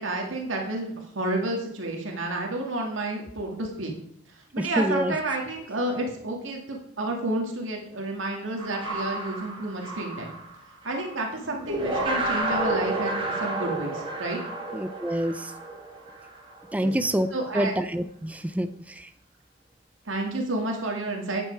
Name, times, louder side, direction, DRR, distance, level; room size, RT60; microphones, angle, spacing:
voice 1, 0.0-3.9 4.5-10.3 10.8-14.4 16.8-16.9 17.3-17.7 20.1-21.4, right 2 dB, 75° right, 1 dB, 2.2 m, -30 dB
voice 2, 4.6-5.2 14.7-15.5 16.7-17.3 17.5-19.1, equal, 5° right, 10 dB, 0.5 m, -27 dB
sound 1, 8.6-11.2 11.6-16.7, right 2 dB, 25° right, 4.9 m, -31 dB
12.0 x 9.0 x 4.6 m, 0.70 s
head